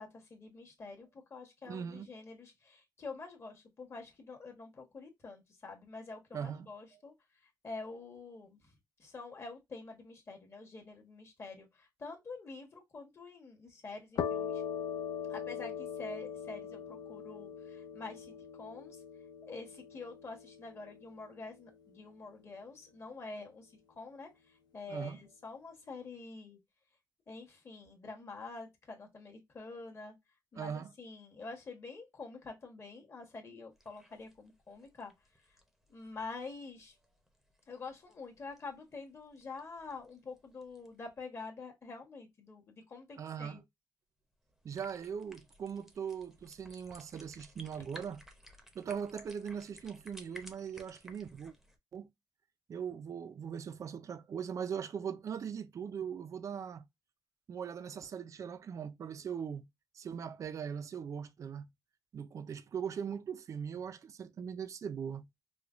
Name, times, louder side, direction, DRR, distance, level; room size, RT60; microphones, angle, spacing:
voice 1, 0.0-7.1 7.6-8.6 9.0-14.6 15.3-19.0 19.4-24.3 24.7-26.6 27.3-30.1 30.5-35.1 35.9-36.9 37.7-43.6 47.7-47.8, left 3 dB, 35° left, 1.2 m, -47 dB
voice 2, 1.6-2.1 6.3-6.7 24.9-25.2 30.6-30.9 43.2-43.6 44.6-48.2 48.8-51.5 51.9-52.1 52.7-56.8 57.5-59.7 59.9-61.7 62.1-65.3, right 7 dB, 45° right, 0.4 m, -40 dB
sound 1, 14.2-21.6, left 8 dB, 70° left, 0.5 m, -41 dB
sound 2, 33.7-41.0 44.4-51.8, equal, 5° right, 0.7 m, -58 dB
4.9 x 2.2 x 2.4 m
wide cardioid pair, 150°, 7 cm